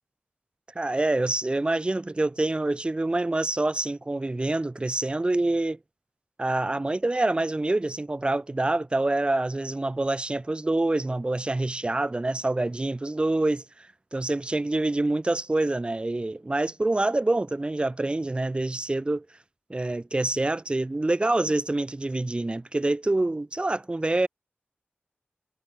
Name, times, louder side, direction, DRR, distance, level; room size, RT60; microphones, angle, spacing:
voice 1, 0.7-5.8 6.4-13.9 14.1-19.2 19.7-24.3, right 2 dB, 25° right, 6.9 m, -26 dB
wide cardioid pair, 100°, 4 cm